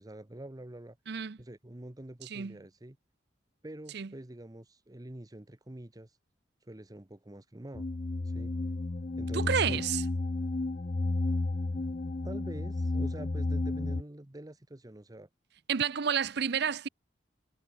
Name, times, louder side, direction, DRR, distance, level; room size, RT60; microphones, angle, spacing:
voice 1, 0.0-1.0 1.4-3.0 3.6-6.2 6.6-7.9 8.2-8.5 9.2-9.8 12.2-15.3, right 1 dB, 20° right, 1.0 m, -46 dB
voice 2, 1.1-1.4 2.3-2.6 3.9-4.1 9.3-10.0 15.7-16.9, right 7 dB, 65° right, 0.6 m, -30 dB
sound 1, 7.7-14.0, left 2 dB, 40° left, 0.6 m, -32 dB
head